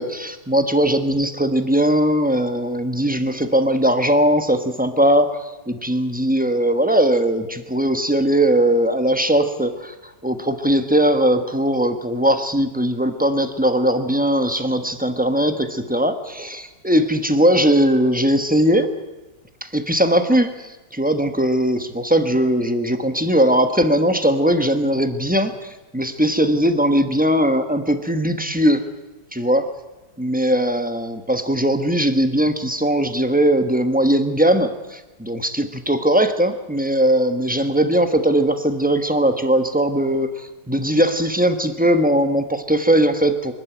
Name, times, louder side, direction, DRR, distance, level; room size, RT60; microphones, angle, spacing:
voice 1, 0.0-18.9 19.6-28.8 29.3-29.7 30.2-43.5, right 1 dB, 5° right, 7 dB, 1.0 m, -19 dB
25.0 x 12.0 x 9.3 m, 1.1 s
omnidirectional pair, 1.9 m